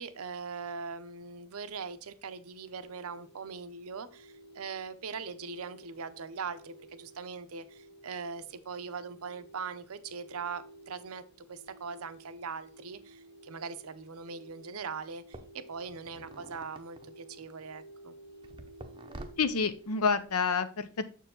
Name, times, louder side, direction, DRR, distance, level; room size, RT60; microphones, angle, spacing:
voice 1, 0.0-18.1, right 5 dB, 80° right, 0.6 m, -41 dB
sound 1, 2.8-20.0, right 1 dB, 50° left, 0.9 m, -54 dB
sound 2, 14.5-14.6 15.3-17.6 18.4-20.3, right 2 dB, 20° right, 0.6 m, -49 dB
voice 2, 19.4-21.1, left 5 dB, 85° left, 0.7 m, -28 dB
6.8 x 4.6 x 3.8 m
head